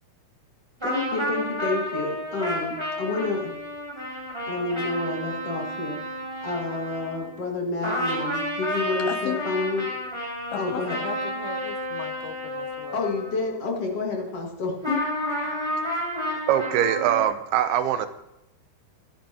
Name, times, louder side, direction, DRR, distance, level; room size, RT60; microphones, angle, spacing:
voice 1, 0.8-3.5 4.5-6.0 6.4-9.9 10.6-11.0 12.9-15.0, left 3 dB, 45° left, 2.4 m, -29 dB
sound 1, 0.8-7.6 7.8-13.8 14.8-17.2, equal, 5° right, 4.1 m, -31 dB
voice 2, 9.1-9.4 10.5-13.0, left 10 dB, 80° left, 2.7 m, -36 dB
voice 3, 16.5-18.1, right 10 dB, 85° right, 2.7 m, -22 dB
23.0 x 10.5 x 2.9 m
omnidirectional pair, 4.5 m